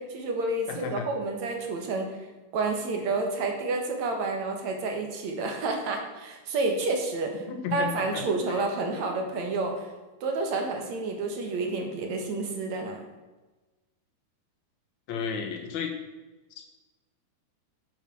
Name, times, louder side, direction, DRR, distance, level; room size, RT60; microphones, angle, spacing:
voice 1, 0.0-2.2 2.5-7.5 7.7-9.9 10.2-13.0, right 3 dB, 60° right, 3 dB, 2.5 m, -29 dB
voice 2, 0.7-1.1 7.5-7.9 8.5-8.6 15.1-15.9 16.6-16.7, left 7 dB, 60° left, 3 dB, 2.4 m, -32 dB
9.0 x 8.0 x 6.2 m, 1.2 s
omnidirectional pair, 4.1 m